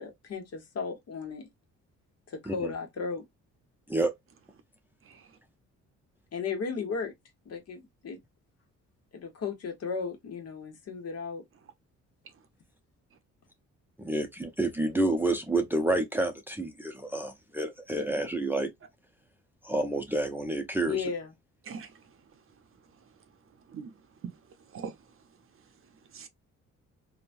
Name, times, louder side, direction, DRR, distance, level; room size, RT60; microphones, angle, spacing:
voice 1, 0.0-1.5 2.3-3.2 6.3-7.1 7.4-8.2 9.1-11.4 20.8-21.3, left 5 dB, 55° left, 1.1 m, -35 dB
voice 2, 14.0-18.7 19.6-21.0, right 2 dB, 5° right, 0.6 m, -29 dB
voice 3, 21.7-22.0 23.7-23.9 24.2-24.3 24.7-25.0 26.1-26.3, right 6 dB, 45° right, 0.7 m, -41 dB
3.0 x 2.2 x 2.5 m
cardioid pair, 90°, 30 cm